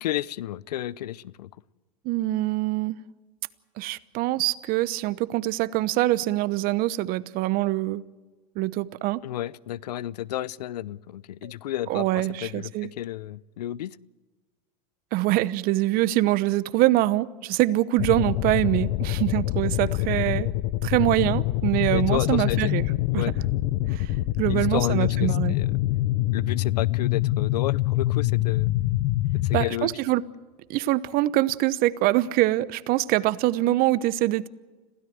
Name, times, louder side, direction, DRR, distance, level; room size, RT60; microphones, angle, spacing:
voice 1, 0.0-1.5 9.2-14.0 20.0-20.1 21.9-22.7 23.1-23.3 24.5-25.8 26.3-28.7 29.3-30.0, left 13 dB, 85° left, 0.7 m, -32 dB
voice 2, 2.0-3.0 3.8-8.0 8.6-9.2 11.4-11.5 11.9-12.9 15.1-20.5 20.8-22.8 23.1-23.2 23.9-24.1 24.4-25.6 29.5-30.2 30.7-34.5, right 16 dB, 45° right, 0.9 m, -24 dB
sound 1, 18.0-29.7, left 16 dB, 60° left, 1.1 m, -25 dB
26.5 x 16.5 x 7.8 m
supercardioid pair, 115°, 20 cm